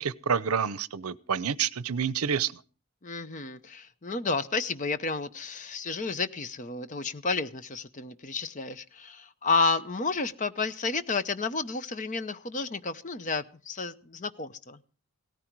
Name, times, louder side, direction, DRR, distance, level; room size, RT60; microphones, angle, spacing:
voice 1, 0.0-2.5, right 7 dB, 80° right, 0.7 m, -28 dB
voice 2, 3.0-14.8, left 4 dB, 35° left, 0.7 m, -31 dB
17.5 x 14.0 x 4.6 m
head